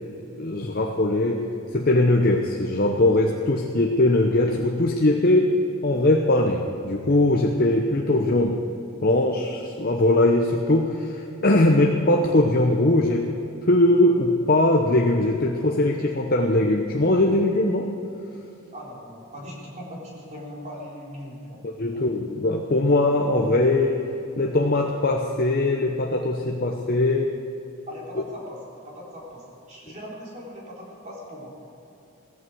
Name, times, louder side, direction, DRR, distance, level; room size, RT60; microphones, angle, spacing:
voice 1, 0.0-1.4 1.7-5.5 5.8-8.6 9.0-13.3 13.6-17.9 21.8-24.0 24.4-27.3, left 2 dB, 40° left, 2 dB, 0.8 m, -21 dB
voice 2, 18.7-21.6 21.9-22.1 27.9-31.8, equal, 30° right, -4 dB, 3.9 m, -40 dB
17.0 x 14.0 x 4.7 m, 2.9 s
head